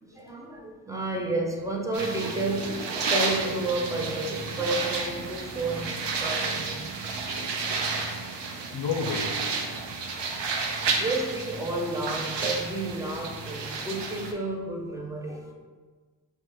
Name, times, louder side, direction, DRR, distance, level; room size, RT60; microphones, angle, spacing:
voice 1, 0.0-7.4 10.7-15.5, right 2 dB, 10° right, 0 dB, 0.4 m, -31 dB
sound 1, 1.9-14.3, right 4 dB, 80° right, 0.6 m, -31 dB
voice 2, 8.1-9.4 10.1-10.5 15.3-15.4, left 5 dB, 65° left, 5 dB, 0.5 m, -34 dB
6.2 x 2.2 x 3.0 m, 1.4 s
wide cardioid pair, 145°, 42 cm